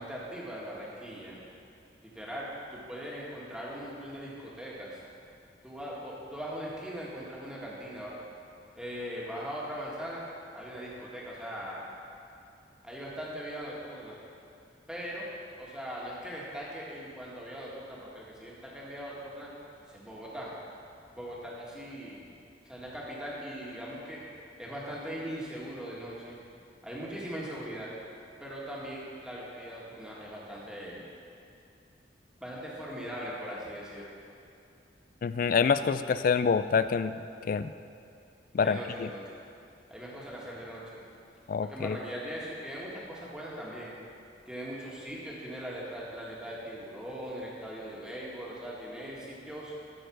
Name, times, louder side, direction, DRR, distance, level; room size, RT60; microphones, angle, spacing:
voice 1, 0.0-1.4 2.0-5.0 5.6-8.1 8.7-10.2 10.5-11.8 12.8-14.2 14.9-15.3 15.6-19.5 19.9-20.5 21.1-22.3 22.6-24.2 24.6-26.4 26.8-27.9 28.4-31.1 32.4-34.1 38.6-39.2 39.9-40.8 41.7-43.9 44.4-49.7, equal, 5° right, -6 dB, 1.7 m, -40 dB
voice 2, 35.2-37.7 38.5-39.1 41.5-42.0, left 5 dB, 50° left, 13 dB, 0.3 m, -27 dB
13.5 x 4.6 x 6.3 m, 2.6 s
head